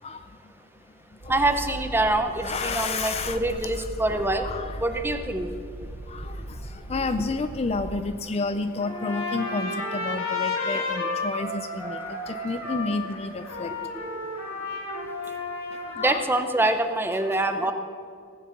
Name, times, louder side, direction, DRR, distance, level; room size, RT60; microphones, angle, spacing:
voice 1, 0.0-0.5 1.2-1.4 2.4-3.4 3.7-3.9 4.1-4.8 6.0-13.8 14.1-14.3 15.7-16.3 16.7-16.8 17.6-17.7, left 3 dB, 30° left, 10 dB, 0.4 m, -31 dB
Purr, 1.2-8.2, right 1 dB, 85° right, 1.0 m, -39 dB
voice 2, 1.3-4.5 4.8-5.5 16.0-17.7, right 2 dB, 10° right, 7 dB, 0.7 m, -25 dB
Trumpet, 8.8-16.1, left 3 dB, 90° left, 3.2 m, -32 dB
17.5 x 7.3 x 7.2 m, 2.3 s
head